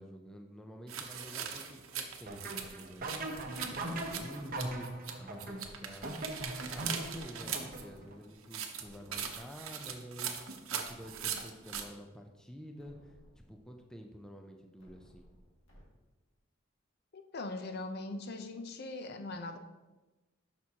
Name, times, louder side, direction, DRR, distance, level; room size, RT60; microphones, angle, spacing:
voice 1, 0.0-6.3 6.7-13.2 13.5-15.3, equal, 5° left, 3 dB, 0.5 m, -49 dB
sound 1, 0.9-5.1 5.4-7.8 8.4-11.8, right 8 dB, 80° right, 0.8 m, -40 dB
sound 2, 2.3-8.2, right 1 dB, 45° right, 0.8 m, -40 dB
sound 3, 8.8-9.8 10.8-11.8 12.3-12.4 12.8-13.8 14.8-15.8, equal, 65° left, 2.0 m, -60 dB
voice 2, 17.1-19.6, left 2 dB, 50° left, 7 dB, 0.6 m, -41 dB
10.5 x 6.0 x 2.8 m, 1.2 s
head